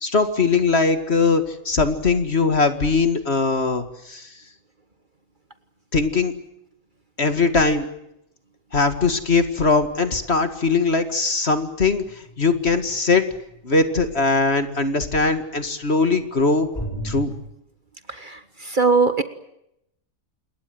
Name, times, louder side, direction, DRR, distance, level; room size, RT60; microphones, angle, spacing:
voice 1, 0.0-4.3 5.9-6.3 7.2-7.9 8.7-12.0 12.4-13.2 13.6-16.7 17.0-17.3, left 3 dB, 45° left, 9 dB, 2.3 m, -20 dB
sound 1, 12.1-12.3 16.7-17.2, equal, 15° left, 4.6 m, -29 dB
voice 2, 18.7-19.2, right 4 dB, 35° right, 10 dB, 1.6 m, -19 dB
28.0 x 21.5 x 7.9 m, 0.80 s
omnidirectional pair, 1.5 m